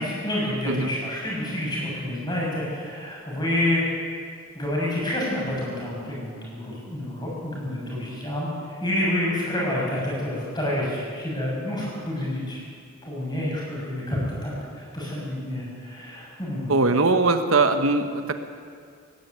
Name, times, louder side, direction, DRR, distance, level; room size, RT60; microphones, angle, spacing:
voice 1, 0.0-3.8 4.5-8.5 8.8-12.6 13.0-16.7, left 1 dB, 20° left, -4 dB, 7.0 m, -28 dB
voice 2, 16.7-18.3, right 3 dB, 70° right, 8 dB, 1.1 m, -21 dB
19.0 x 14.5 x 9.4 m, 2.2 s
head